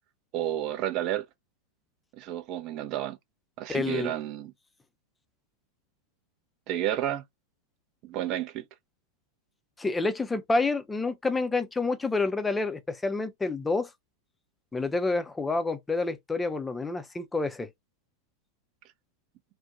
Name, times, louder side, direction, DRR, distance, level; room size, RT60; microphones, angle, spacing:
voice 1, 0.3-1.2 2.2-3.2 3.6-4.5 6.7-7.2 8.0-8.6, right 12 dB, 40° right, 0.5 m, -31 dB
voice 2, 3.7-4.1 9.8-13.9 14.7-17.7, left 3 dB, 10° left, 0.5 m, -28 dB
2.5 x 2.2 x 3.7 m
figure-of-eight pair, 90°, 0 cm